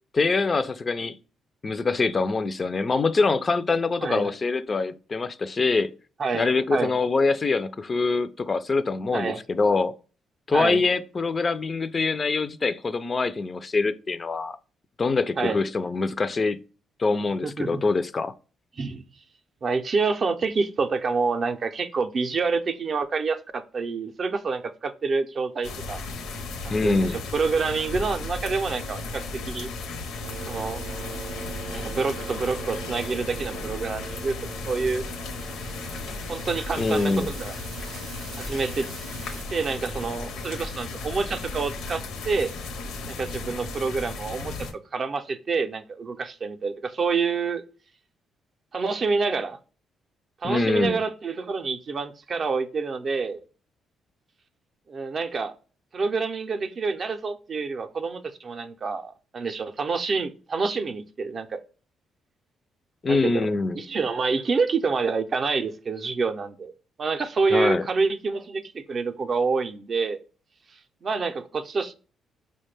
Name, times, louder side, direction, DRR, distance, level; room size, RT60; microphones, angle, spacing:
voice 1, 0.1-1.2 1.6-5.9 6.3-9.9 10.5-14.6 15.0-16.6 17.0-18.3 26.7-27.2 36.8-37.3 50.4-51.0 63.0-63.8 67.5-67.8, left 3 dB, 35° left, 0.3 m, -24 dB
voice 2, 4.0-4.3 6.2-6.9 9.1-9.4 10.5-10.8 15.4-15.6 17.4-17.8 18.8-19.0 19.6-26.0 26.6-27.1 27.3-29.7 30.5-30.8 31.7-34.4 34.6-35.0 36.3-37.5 38.4-38.9 39.5-42.5 43.0-47.6 48.7-49.6 50.4-53.4 54.9-55.6 55.9-61.6 63.1-63.5 63.8-66.7 67.0-70.2 71.0-71.9, right 4 dB, 45° right, 0.4 m, -27 dB
sound 1, 25.6-44.7, left 3 dB, 85° left, 0.6 m, -35 dB
sound 2, 30.2-39.4, right 6 dB, 90° right, 0.6 m, -41 dB
4.8 x 2.1 x 3.2 m
cardioid pair, 90°, 0 cm